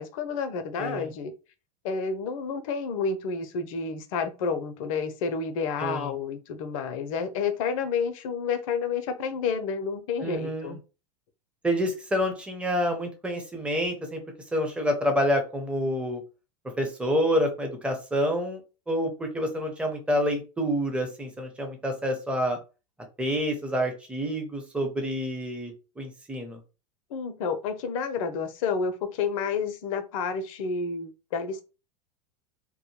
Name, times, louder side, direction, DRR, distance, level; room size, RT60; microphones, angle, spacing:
voice 1, 0.0-1.3 1.8-10.8 27.1-31.6, left 5 dB, 55° left, 0.5 m, -30 dB
voice 2, 0.8-1.1 5.8-6.1 10.2-10.8 11.6-14.2 14.5-16.2 16.8-18.6 18.9-22.6 23.2-26.6, equal, 5° right, 0.7 m, -28 dB
2.2 x 2.1 x 3.0 m
figure-of-eight pair, 85°, 20 cm